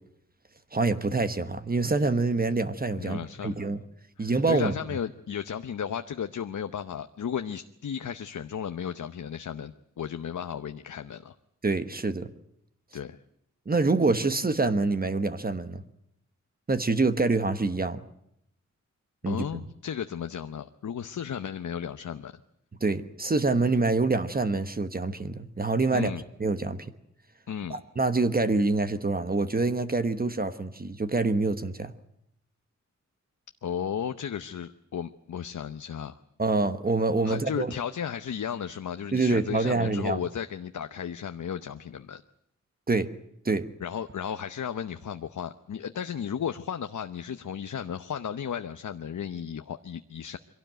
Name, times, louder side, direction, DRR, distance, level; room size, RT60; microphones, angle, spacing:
voice 1, 0.7-3.8 4.2-4.7 11.6-12.3 13.7-15.8 16.7-18.0 19.2-19.4 22.8-26.1 26.4-26.8 27.7-31.9 36.4-37.7 39.1-40.2 42.9-43.1 43.4-43.7, right 3 dB, 30° right, 10 dB, 1.2 m, -26 dB
voice 2, 2.9-3.6 4.2-11.3 12.9-13.2 19.2-22.3 25.9-26.2 27.5-27.8 33.6-36.2 37.2-42.2 43.8-50.4, left 8 dB, 80° left, 9 dB, 0.9 m, -34 dB
24.0 x 17.5 x 9.1 m, 0.76 s
wide cardioid pair, 130°, 30 cm